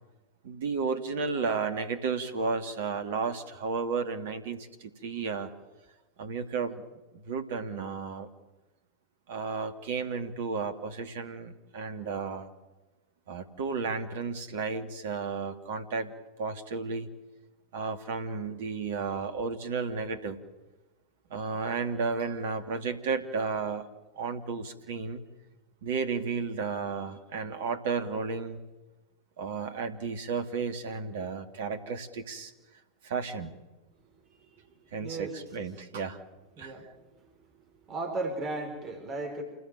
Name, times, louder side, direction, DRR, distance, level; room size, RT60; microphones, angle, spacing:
voice 1, 0.4-5.5 6.2-6.8 7.1-8.3 9.3-12.5 13.3-16.1 16.4-17.1 17.7-20.4 21.3-23.9 24.2-25.2 25.8-28.6 29.4-32.5 33.0-33.5 34.9-36.2 36.6-36.8, right 5 dB, 55° right, 8 dB, 2.6 m, -33 dB
voice 2, 35.0-35.4 36.6-36.9 37.9-39.4, right 2 dB, 30° right, 5 dB, 4.9 m, -35 dB
28.5 x 20.0 x 9.2 m, 1.1 s
figure-of-eight pair, 90°, 0 cm